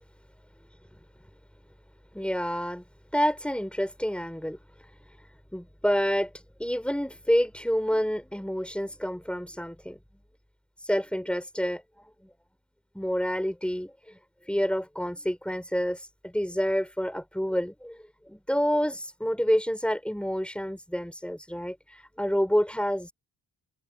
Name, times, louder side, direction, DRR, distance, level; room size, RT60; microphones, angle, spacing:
voice 1, 2.1-2.8 3.1-4.6 5.5-6.3 6.6-10.0 10.9-11.8 12.9-14.2 14.5-18.0 18.3-23.1, equal, ahead, 5.9 m, -28 dB
wide cardioid pair, 85°, 44 cm